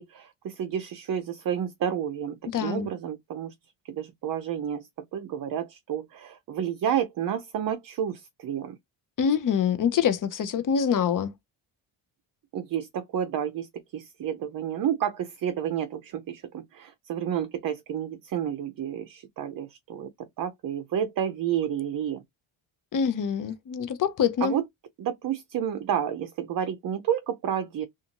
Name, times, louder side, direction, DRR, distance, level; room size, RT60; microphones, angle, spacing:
voice 1, 0.0-3.5 3.9-8.8 12.5-13.7 13.9-20.1 20.4-22.2 24.4-24.6 25.0-27.8, right 9 dB, 45° right, 0.5 m, -30 dB
voice 2, 2.5-2.9 9.2-11.3 22.9-24.6, left 7 dB, 40° left, 0.6 m, -25 dB
2.5 x 2.5 x 2.8 m
cardioid pair, 100°, 47 cm